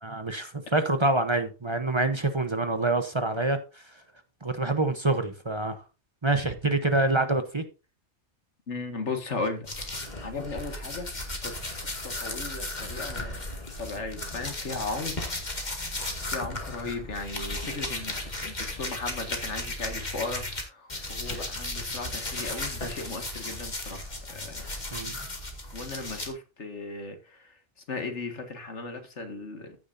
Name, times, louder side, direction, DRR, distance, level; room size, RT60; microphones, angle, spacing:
voice 1, 0.0-4.0 4.4-5.8 6.2-7.6 16.9-17.0 24.9-25.2, right 2 dB, 25° right, 0.9 m, -26 dB
voice 2, 8.7-10.0 10.2-11.1 11.4-15.3 16.3-24.6 25.7-27.6 27.9-29.8, left 3 dB, 85° left, 2.2 m, -36 dB
sound 1, 9.7-20.6 20.9-26.3, left 2 dB, 40° left, 2.2 m, -35 dB
15.0 x 6.9 x 2.7 m
omnidirectional pair, 1.2 m